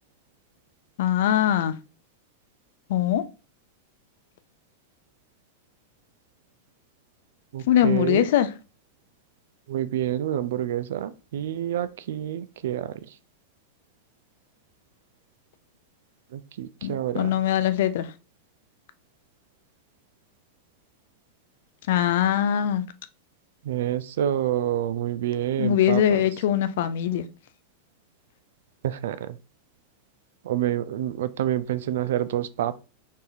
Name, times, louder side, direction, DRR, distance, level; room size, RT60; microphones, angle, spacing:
voice 1, 1.0-1.7 2.9-3.2 7.7-8.5 16.8-18.1 21.9-22.8 25.6-27.2, left 10 dB, 55° left, 0.4 m, -22 dB
voice 2, 7.5-8.3 9.7-12.9 16.3-17.4 23.6-26.2 28.8-29.4 30.4-32.8, right 11 dB, 60° right, 0.4 m, -28 dB
4.1 x 3.6 x 2.7 m
figure-of-eight pair, 90°, 0 cm